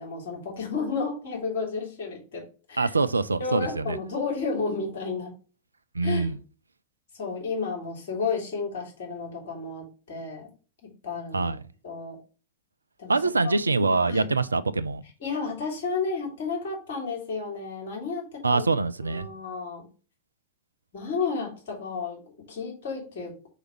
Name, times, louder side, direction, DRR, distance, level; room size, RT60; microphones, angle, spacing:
voice 1, 0.0-2.9 3.4-5.3 6.0-6.3 7.1-10.5 10.8-11.5 11.8-12.2 13.0-13.2 13.8-14.3 15.2-18.6 19.0-19.9 20.9-22.2 22.5-23.4, left 4 dB, 55° left, 3.4 m, -32 dB
voice 2, 2.8-4.0 5.9-6.4 11.3-11.6 13.1-15.0 18.4-19.3, right 3 dB, 80° right, 0.4 m, -24 dB
5.0 x 5.0 x 4.4 m
figure-of-eight pair, 90°, 0 cm